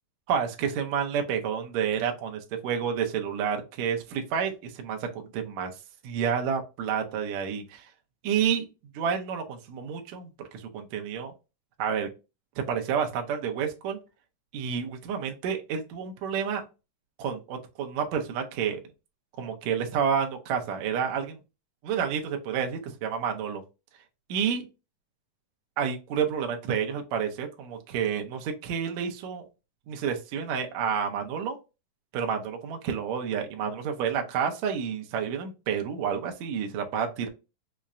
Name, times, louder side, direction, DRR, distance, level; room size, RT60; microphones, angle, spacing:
voice 1, 0.3-5.7 6.0-7.9 8.2-8.6 8.9-11.3 11.8-12.1 12.7-14.0 14.5-16.6 17.2-18.8 19.4-21.4 21.8-23.6 24.3-24.7 25.8-29.4 29.9-31.6 32.1-37.3, right 7 dB, 75° right, 4 dB, 1.6 m, -29 dB
5.6 x 2.1 x 2.5 m, 0.28 s
omnidirectional pair, 3.9 m